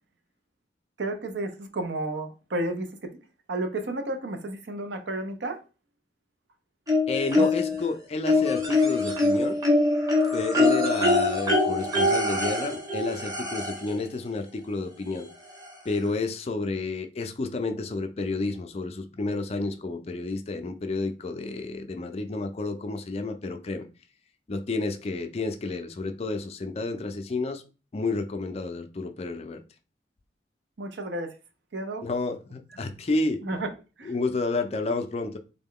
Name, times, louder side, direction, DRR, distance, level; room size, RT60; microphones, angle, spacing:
voice 1, 1.0-3.1 3.5-5.6 7.4-7.5 30.8-31.3 31.7-32.0 33.4-33.7 34.0-34.1, right 2 dB, 85° right, 0.6 m, -32 dB
sound 1, 6.9-7.8 8.3-13.9 15.2-15.3 15.6-15.7, left 2 dB, 20° right, 0.8 m, -23 dB
voice 2, 7.1-9.6 10.3-15.3 15.8-23.9 24.5-27.6 27.9-29.6 32.0-33.4 34.0-35.4, left 3 dB, 35° left, 0.4 m, -30 dB
3.6 x 2.2 x 3.6 m
head